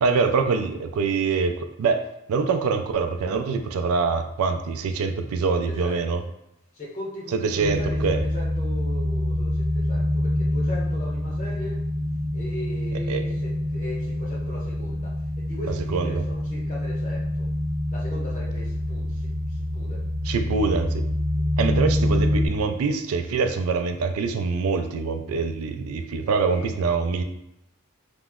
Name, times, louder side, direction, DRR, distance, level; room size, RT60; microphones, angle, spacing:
voice 1, 0.0-1.5 1.8-2.0 2.3-6.2 7.3-8.2 13.1-13.2 15.9-16.2 20.2-21.0 21.6-27.2, right 5 dB, 85° right, 7 dB, 0.3 m, -24 dB
voice 2, 5.7-6.2 6.7-11.8 12.3-17.5 17.9-20.0 21.4-21.5 26.5-26.8, left 1 dB, 35° left, -5 dB, 0.9 m, -38 dB
sound 1, 7.6-22.5, left 1 dB, 35° right, 0.6 m, -26 dB
2.9 x 2.0 x 3.5 m, 0.83 s
head